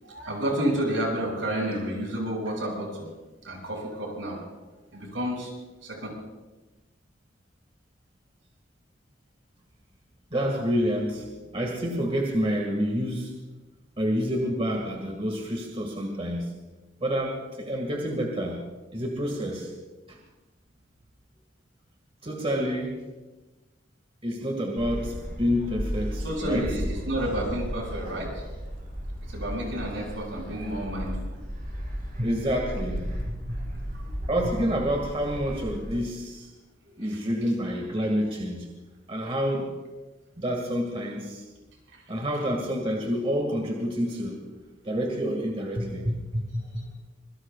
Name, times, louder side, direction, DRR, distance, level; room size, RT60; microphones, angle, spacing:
voice 1, 0.0-3.1 3.4-4.4 4.9-5.5 5.8-6.1 26.2-28.4 29.3-31.2 33.9-34.1 37.0-37.2 41.9-42.0 46.7-46.9, right 1 dB, 75° right, -1 dB, 7.6 m, -30 dB
voice 2, 10.3-11.3 11.5-13.3 14.0-16.5 17.0-18.6 18.9-19.7 20.1-20.2 22.2-23.0 24.2-26.7 28.1-28.2 32.2-34.0 34.3-36.5 37.0-38.7 39.1-39.7 40.4-41.4 42.1-44.4 44.8-46.9, equal, 30° right, 1 dB, 2.0 m, -28 dB
Gull seagull, 24.8-36.0, equal, 50° right, 7.3 m, -35 dB
26.0 x 22.5 x 2.4 m, 1.2 s
head